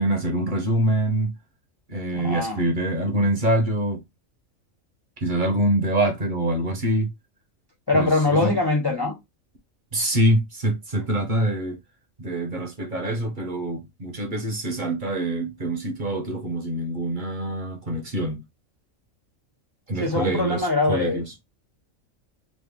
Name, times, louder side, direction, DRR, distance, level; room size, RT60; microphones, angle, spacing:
voice 1, 0.0-1.3 1.9-4.0 5.2-7.1 7.9-8.6 9.9-11.8 12.2-18.4 19.9-21.2, right 1 dB, 40° right, 0.9 m, -25 dB
voice 2, 2.1-2.7 7.9-9.2 20.0-21.2, left 3 dB, 30° left, 0.4 m, -22 dB
3.1 x 2.4 x 3.5 m
omnidirectional pair, 1.4 m